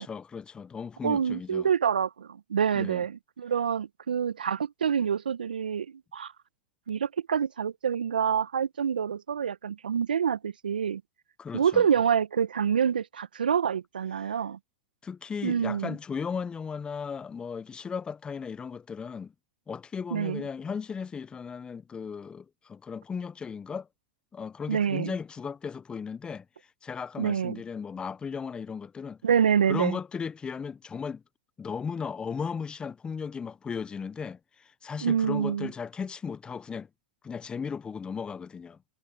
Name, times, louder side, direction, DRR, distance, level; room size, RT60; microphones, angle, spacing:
voice 1, 0.0-1.7 2.7-3.0 11.4-11.9 14.2-14.4 15.0-19.3 19.7-23.9 24.3-26.4 26.8-29.2 29.7-31.2 31.6-36.9 37.2-38.8, left 6 dB, 20° left, 1.3 m, -36 dB
voice 2, 1.0-5.9 6.1-6.3 6.9-11.0 11.5-14.6 15.4-15.9 20.1-20.4 24.7-25.1 27.2-27.6 29.2-30.0 35.0-35.7, right 7 dB, 80° right, 1.5 m, -27 dB
hypercardioid pair, 95°, 5 cm